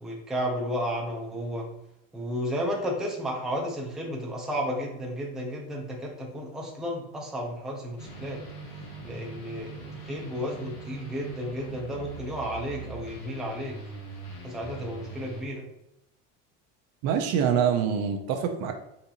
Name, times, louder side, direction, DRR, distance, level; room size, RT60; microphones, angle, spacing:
voice 1, 0.0-1.7 2.1-8.4 9.0-13.8 14.4-15.6, equal, ahead, -2 dB, 0.5 m, -33 dB
sound 1, 8.0-15.4, right 3 dB, 55° left, 1.2 m, -41 dB
voice 2, 17.0-18.7, right 7 dB, 55° right, 5 dB, 0.5 m, -25 dB
3.9 x 2.5 x 2.8 m, 0.83 s
cardioid pair, 140°, 30 cm